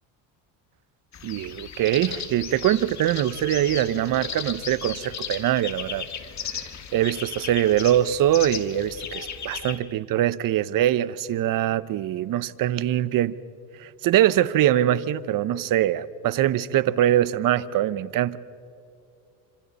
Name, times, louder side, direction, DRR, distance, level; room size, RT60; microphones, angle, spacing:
sound 1, 1.1-9.8, left 8 dB, 40° left, 1.9 m, -36 dB
voice 1, 1.2-6.0 6.9-13.3 13.8-18.4, right 12 dB, 50° right, 16 dB, 0.9 m, -23 dB
27.0 x 26.5 x 4.2 m, 2.5 s
supercardioid pair, 90°, 42 cm